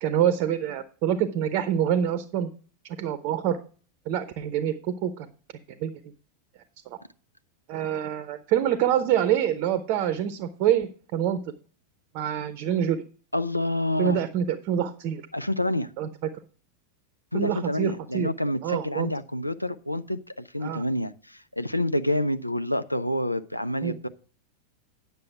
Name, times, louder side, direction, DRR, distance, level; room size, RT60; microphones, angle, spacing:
voice 1, 0.0-2.5 3.0-3.6 4.1-5.3 5.8-5.9 7.7-11.4 12.1-13.0 14.0-15.2 16.0-16.1 17.3-18.3 18.6-19.1 20.6-20.8 23.8-24.0, right 10 dB, 45° right, 12 dB, 0.7 m, -26 dB
voice 2, 13.3-14.2 15.3-15.9 17.3-24.1, left 1 dB, 90° left, 11 dB, 0.5 m, -28 dB
9.6 x 6.8 x 4.7 m, 0.40 s
figure-of-eight pair, 90°, 0 cm